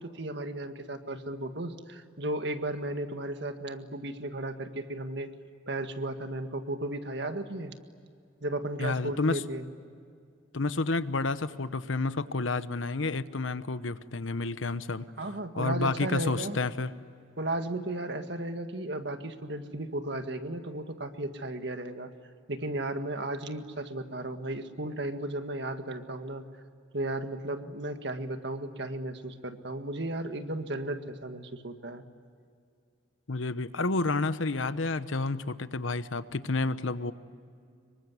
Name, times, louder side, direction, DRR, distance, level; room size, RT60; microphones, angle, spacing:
voice 1, 0.0-5.3 5.7-7.7 8.4-9.7 15.2-16.6 17.4-22.1 22.5-26.4 26.9-32.0, right 1 dB, 60° right, 7 dB, 1.8 m, -35 dB
voice 2, 8.8-9.4 10.5-15.1 15.6-16.9 33.3-37.1, left 3 dB, 85° left, 13 dB, 1.0 m, -30 dB
26.5 x 23.5 x 9.6 m, 2.3 s
head